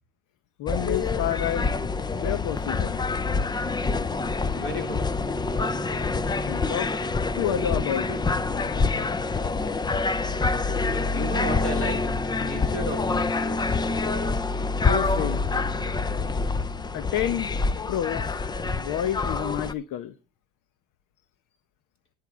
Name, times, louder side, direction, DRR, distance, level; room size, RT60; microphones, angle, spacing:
voice 1, 0.6-1.7 2.2-3.0 6.5-6.9 7.4-8.2 14.9-15.4 16.9-20.1, left 10 dB, 55° left, 0.8 m, -29 dB
sound 1, 0.7-19.7, left 3 dB, 10° left, 0.4 m, -26 dB
voice 2, 4.6-5.1 11.1-12.1 12.4-13.9, left 1 dB, 35° left, 3.9 m, -34 dB
10.5 x 7.8 x 4.5 m
supercardioid pair, 110°, 38 cm